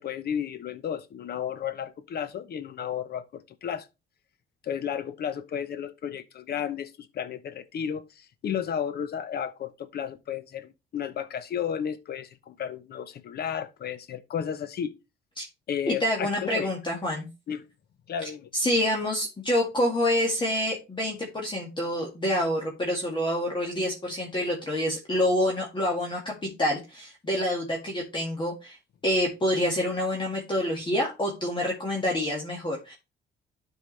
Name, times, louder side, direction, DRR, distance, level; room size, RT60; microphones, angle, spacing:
voice 1, 0.0-3.9 4.6-14.9 15.7-16.7 17.5-17.7 18.1-18.5, left 8 dB, 50° left, 0.9 m, -33 dB
voice 2, 15.9-17.3 18.5-28.8 29.0-32.9, left 1 dB, 25° left, 1.9 m, -27 dB
12.0 x 4.7 x 3.3 m
cardioid pair, 130°, 21 cm